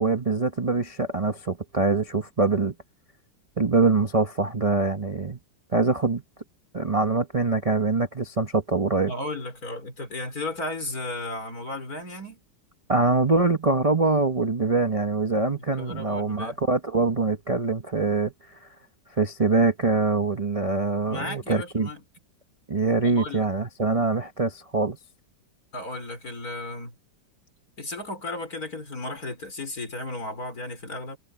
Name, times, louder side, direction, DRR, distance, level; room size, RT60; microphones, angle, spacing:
voice 1, 0.0-2.7 3.6-5.4 5.7-6.2 6.7-9.1 12.9-18.6 19.2-21.9 22.7-25.0, right 3 dB, 25° right, 0.9 m, -24 dB
voice 2, 9.1-12.4 15.8-16.6 21.1-22.0 23.0-23.5 25.7-26.9 27.8-31.2, left 2 dB, 55° left, 5.5 m, -34 dB
omnidirectional pair, 1.9 m